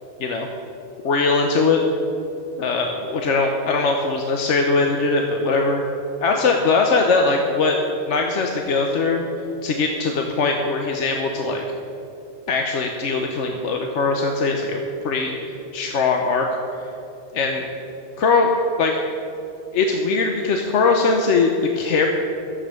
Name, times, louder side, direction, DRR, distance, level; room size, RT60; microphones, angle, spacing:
voice 1, 1.0-1.8 2.6-5.8 6.2-7.8 8.1-9.2 9.6-11.6 12.5-15.4 15.7-16.5 17.3-17.6 18.2-18.5 18.8-19.0 19.7-22.1, left 4 dB, 85° left, 2 dB, 1.2 m, -20 dB
12.5 x 7.6 x 7.9 m, 3.0 s
omnidirectional pair, 1.2 m